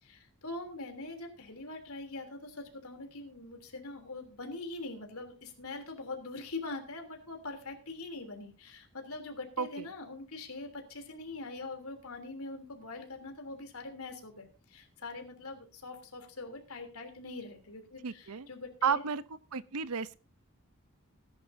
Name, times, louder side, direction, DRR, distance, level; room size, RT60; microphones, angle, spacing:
voice 1, 0.0-19.0, left 2 dB, 80° left, 5 dB, 3.2 m, -43 dB
voice 2, 18.0-18.5 18.8-19.2 19.5-20.1, right 6 dB, 85° right, 15 dB, 0.7 m, -32 dB
19.5 x 11.0 x 2.7 m, 0.32 s
head